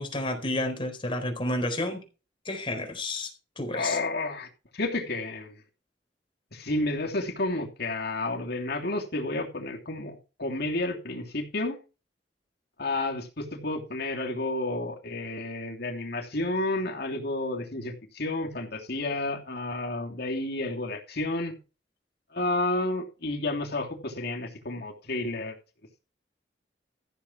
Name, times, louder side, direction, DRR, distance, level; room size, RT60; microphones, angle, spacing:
voice 1, 0.0-2.0 2.5-3.3 3.6-4.0, left 1 dB, 30° left, 4.2 m, -30 dB
voice 2, 3.7-4.5 4.7-5.5 6.5-11.8 12.8-21.6 22.3-25.5, left 2 dB, 65° left, 3.1 m, -31 dB
14.5 x 7.4 x 4.6 m
head